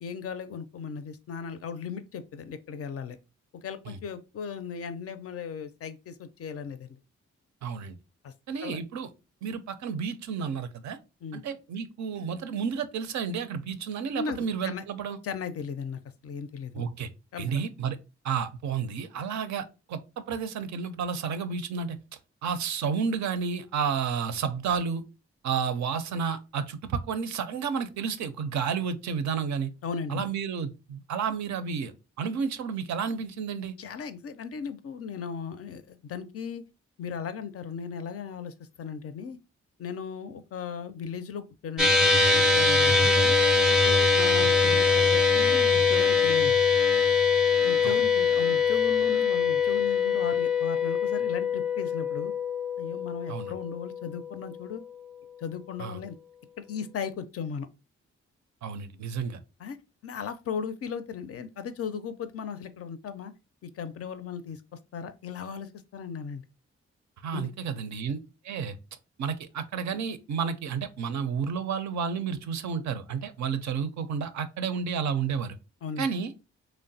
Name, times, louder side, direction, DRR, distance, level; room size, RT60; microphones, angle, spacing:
voice 1, 0.0-3.2 3.5-7.0 8.2-8.3 8.6-8.8 11.2-11.4 14.2-14.8 15.2-16.9 17.3-17.5 29.8-30.2 33.8-36.6 37.0-39.4 39.8-43.4 43.8-46.6 47.6-52.3 52.8-54.8 55.4-56.2 56.6-57.7 59.6-59.8 60.0-63.3 63.6-64.6 64.9-66.4 67.3-67.5 75.8-76.1, left 6 dB, 50° left, 0.4 m, -37 dB
voice 2, 7.6-8.0 8.5-9.1 9.4-11.0 11.3-15.2 16.7-17.1 17.4-18.0 18.2-22.0 22.4-25.0 25.4-29.7 30.1-31.9 32.2-33.7 47.8-48.0 53.3-53.5 55.8-56.0 58.6-59.4 67.2-68.2 68.4-68.8 69.2-75.6 76.0-76.3, right 6 dB, 70° right, 0.4 m, -31 dB
sound 1, 41.8-54.3, left 5 dB, ahead, 0.5 m, -23 dB
3.0 x 2.1 x 2.6 m
supercardioid pair, 45°, 30 cm